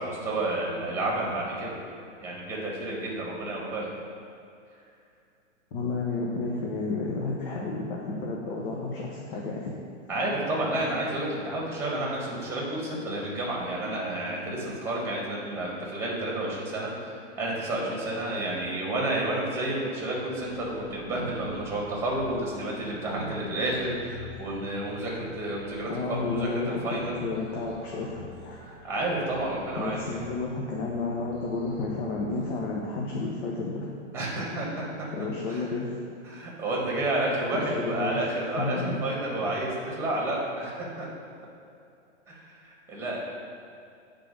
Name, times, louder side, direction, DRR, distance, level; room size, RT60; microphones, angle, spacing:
voice 1, 0.0-1.8 2.2-3.9 10.1-27.2 28.8-30.3 34.1-35.1 35.5-35.7 36.2-41.1 42.3-43.2, right 1 dB, 5° right, -3 dB, 1.6 m, -30 dB
voice 2, 5.7-9.7 25.9-28.6 29.8-33.9 35.1-36.0 37.5-38.2 38.6-39.0, left 3 dB, 45° left, -2 dB, 1.0 m, -31 dB
sound 1, 20.3-32.8, equal, 25° left, 1.7 m, -45 dB
8.6 x 3.8 x 5.3 m, 2.4 s
hypercardioid pair, 145°, 36 cm